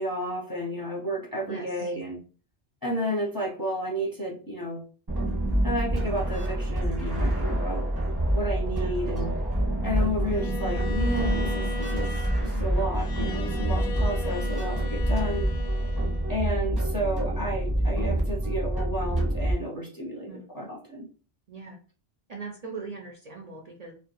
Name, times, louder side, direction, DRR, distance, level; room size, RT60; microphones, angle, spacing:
voice 1, 0.0-2.2 2.8-4.8 5.6-7.9 8.3-9.3 9.8-15.5 16.3-21.1, equal, 25° left, -2 dB, 0.5 m, -32 dB
voice 2, 1.5-1.9 8.7-8.9 13.9-14.0 20.3-20.4 21.5-21.8 22.3-23.9, right 4 dB, 50° right, -1 dB, 0.5 m, -40 dB
sound 1, 5.1-19.5, right 1 dB, 25° right, 0.8 m, -27 dB
Bowed string instrument, 10.3-16.5, left 3 dB, 90° left, 0.8 m, -38 dB
2.2 x 2.2 x 2.9 m, 0.38 s
omnidirectional pair, 1.0 m